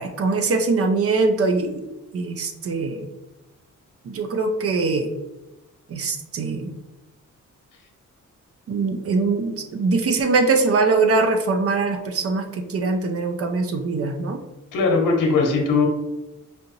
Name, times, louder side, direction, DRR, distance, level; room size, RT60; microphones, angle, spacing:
voice 1, 0.0-1.9 2.1-3.1 4.1-5.1 5.9-6.7 8.7-14.4, right 3 dB, 45° right, 5 dB, 0.6 m, -22 dB
voice 2, 14.7-15.9, left 4 dB, 90° left, 0 dB, 1.0 m, -19 dB
5.1 x 2.9 x 2.6 m, 1.0 s
wide cardioid pair, 140°, 31 cm